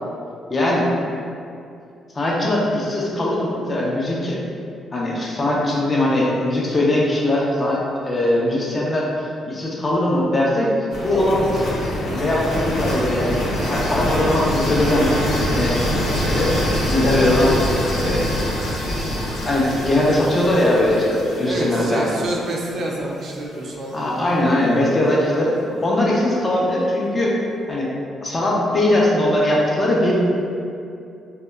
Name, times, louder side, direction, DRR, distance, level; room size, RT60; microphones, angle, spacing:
voice 1, 0.5-0.9 2.1-4.4 4.9-10.7 11.0-11.7 12.1-15.8 16.1-16.5 16.9-17.6 18.0-18.2 19.4-22.1 23.9-25.5 25.8-27.4 27.7-27.9 28.2-30.1, left 1 dB, 35° left, -4 dB, 0.5 m, -20 dB
sound 1, 10.9-22.8, equal, 70° left, 0.7 m, -24 dB
voice 2, 21.4-24.7, right 1 dB, 60° right, -1 dB, 0.4 m, -29 dB
2.7 x 2.2 x 2.2 m, 2.6 s
cardioid pair, 90°, 0 cm